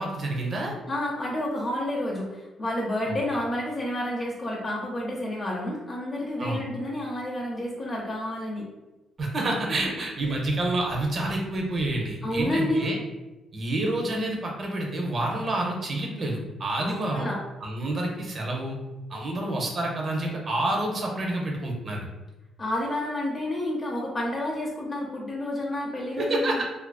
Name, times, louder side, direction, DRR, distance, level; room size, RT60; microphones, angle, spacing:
voice 1, 0.0-0.7 3.1-3.2 6.4-6.6 9.2-13.0 13.5-17.3 17.6-18.8 19.1-22.1 26.2-26.6, right 1 dB, 45° right, 0 dB, 0.6 m, -28 dB
voice 2, 0.9-8.7 12.2-12.9 16.8-17.4 22.6-26.6, left 1 dB, 35° left, -3 dB, 0.5 m, -30 dB
2.4 x 2.2 x 2.2 m, 1.1 s
cardioid pair, 90°, 0 cm